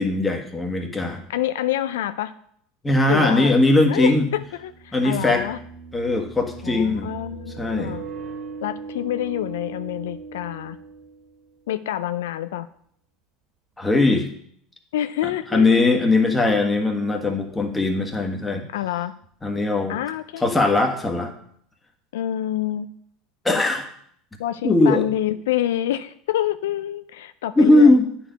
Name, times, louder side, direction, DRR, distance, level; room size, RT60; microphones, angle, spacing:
voice 1, 0.0-1.2 2.8-4.3 4.9-5.4 5.9-7.1 7.6-8.0 13.8-14.3 15.5-18.6 19.4-20.0 20.4-21.3 23.4-23.9 24.6-25.0 27.6-28.1, left 2 dB, 10° left, 3 dB, 1.5 m, -19 dB
voice 2, 1.3-2.3 3.1-3.5 3.9-5.6 6.6-8.0 8.6-10.8 11.7-12.7 14.9-15.9 18.7-19.1 19.9-20.4 22.1-22.9 24.4-28.0, left 12 dB, 85° left, 13 dB, 0.4 m, -27 dB
sound 1, 3.1-3.2 4.7-11.5, right 5 dB, 35° right, 2.5 m, -38 dB
9.0 x 4.6 x 5.1 m, 0.66 s
supercardioid pair, 100°, 0 cm